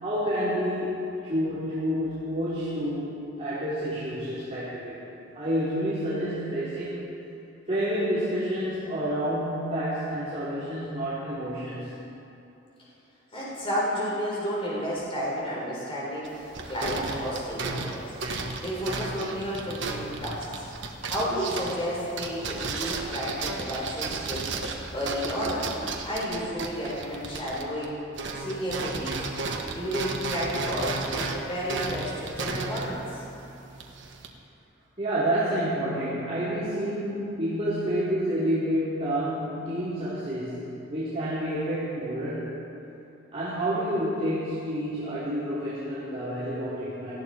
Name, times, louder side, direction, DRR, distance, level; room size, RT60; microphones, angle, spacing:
voice 1, 0.0-5.0 5.3-7.0 7.7-11.9 35.0-42.6 43.3-47.1, equal, 35° right, -12 dB, 3.4 m, -29 dB
voice 2, 13.3-18.1 18.6-20.6 21.1-25.7 26.0-28.0 28.4-29.2 29.7-33.2, equal, 30° left, -6 dB, 4.0 m, -32 dB
sound 1, 16.2-27.9 28.1-34.3, right 3 dB, 65° right, 1.3 m, -34 dB
18.5 x 14.0 x 4.4 m, 2.9 s
head